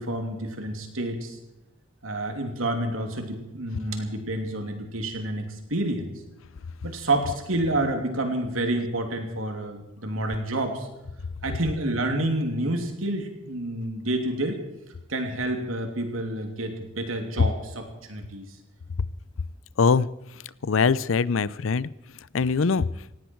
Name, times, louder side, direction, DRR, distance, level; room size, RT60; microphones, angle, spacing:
voice 1, 0.0-1.4 2.0-6.1 6.8-10.9 11.4-14.6 15.1-18.5, right 1 dB, 85° right, 4 dB, 2.9 m, -29 dB
voice 2, 19.8-20.1 20.3-21.9 22.3-22.9, left 5 dB, 70° left, 20 dB, 0.6 m, -22 dB
18.0 x 16.5 x 4.6 m, 0.93 s
head